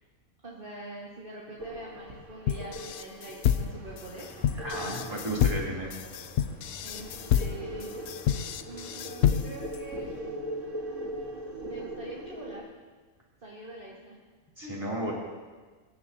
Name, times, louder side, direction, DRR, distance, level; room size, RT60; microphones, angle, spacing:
voice 1, 0.4-4.5 5.0-5.1 6.8-8.0 8.7-10.0 11.6-12.7 13.4-14.2 14.6-14.8, right 2 dB, 40° right, -5 dB, 1.9 m, -44 dB
sound 1, 1.6-12.6, equal, 65° right, 1.9 m, -41 dB
sound 2, 2.5-9.8, left 10 dB, 90° left, 1.0 m, -28 dB
sound 3, 3.7-9.1, equal, 5° left, 2.7 m, -51 dB
voice 2, 4.6-5.9 14.6-15.1, right 1 dB, 20° right, -5 dB, 3.2 m, -33 dB
23.5 x 11.0 x 2.8 m, 1.4 s
omnidirectional pair, 1.4 m